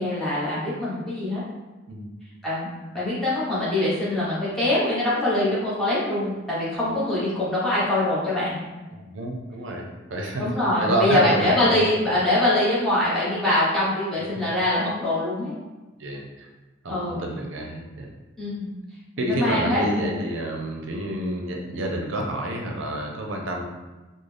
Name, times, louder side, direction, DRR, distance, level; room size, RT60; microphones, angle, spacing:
voice 1, 0.0-1.4 2.4-2.7 2.9-8.6 10.4-15.5 16.9-17.3 18.4-18.7 19.2-20.1, left 1 dB, ahead, -10 dB, 1.0 m, -23 dB
voice 2, 8.9-10.5 10.8-11.8 12.1-12.2 14.4-14.5 16.0-16.5 16.8-18.1 19.2-23.6, right 1 dB, 75° right, 1 dB, 0.5 m, -29 dB
3.9 x 2.0 x 3.3 m, 1.2 s
head